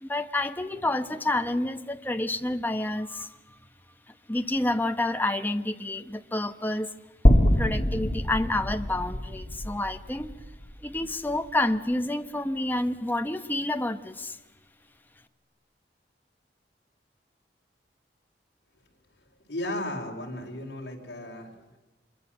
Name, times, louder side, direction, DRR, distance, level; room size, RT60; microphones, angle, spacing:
voice 1, 0.0-3.3 4.3-6.9 7.5-10.3 10.8-14.4, left 1 dB, 10° left, 7 dB, 1.1 m, -29 dB
sound 1, 7.2-11.5, equal, 35° left, 2.4 m, -24 dB
voice 2, 19.5-21.8, left 1 dB, 65° left, -1 dB, 4.6 m, -35 dB
26.0 x 23.0 x 7.9 m, 1.1 s
head